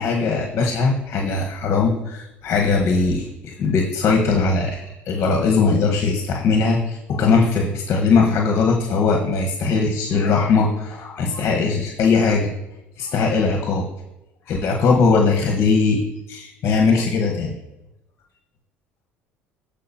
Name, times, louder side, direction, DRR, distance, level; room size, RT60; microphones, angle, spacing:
voice 1, 0.0-12.5 13.0-13.8 14.5-16.0 16.3-17.5, left 4 dB, 50° left, 1 dB, 1.4 m, -20 dB
14.0 x 5.1 x 2.9 m, 0.93 s
hypercardioid pair, 70°, 5 cm